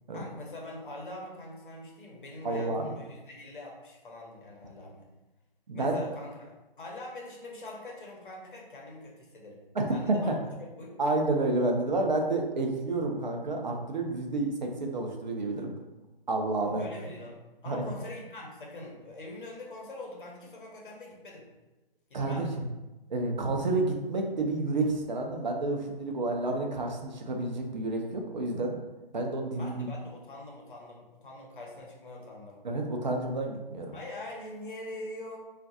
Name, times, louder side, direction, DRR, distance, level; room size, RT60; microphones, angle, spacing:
voice 1, 0.1-5.1 5.7-6.5 6.8-9.6 9.9-10.9 16.7-21.5 22.1-22.5 29.6-32.6 33.9-35.4, left 2 dB, 60° left, -2 dB, 1.0 m, -43 dB
voice 2, 2.4-2.9 5.7-6.0 9.7-10.3 11.0-15.7 16.3-16.9 17.7-17.8 22.1-22.6 23.1-28.8 29.1-29.9 32.6-33.9, right 2 dB, 50° right, 2 dB, 0.5 m, -30 dB
3.7 x 2.4 x 2.6 m, 1.1 s
figure-of-eight pair, 145°, 29 cm